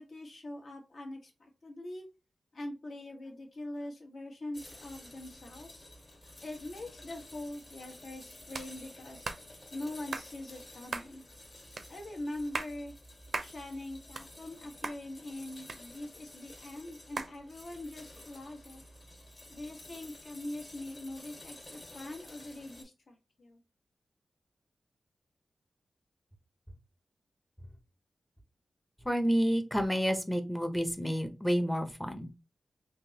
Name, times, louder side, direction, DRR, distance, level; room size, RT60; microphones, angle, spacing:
voice 1, 0.0-2.1 2.5-5.8 6.4-9.3 9.7-11.2 11.9-12.9 13.4-18.8 19.5-23.6, left 1 dB, 60° left, 1 dB, 1.2 m, -43 dB
sound 1, 4.5-22.8, left 1 dB, 40° left, 1.5 m, -52 dB
sound 2, 8.5-8.7 9.2-9.4 10.1-10.3 10.9-11.1 11.8-11.9 12.4-12.7 13.3-13.5 13.9-14.6 14.8-15.0 15.7-16.3 17.2-17.3, right 4 dB, 55° right, 0.5 m, -37 dB
voice 2, 29.0-32.3, equal, 5° left, 7 dB, 0.7 m, -29 dB
3.4 x 3.0 x 2.8 m, 0.28 s
wide cardioid pair, 120°, 0 cm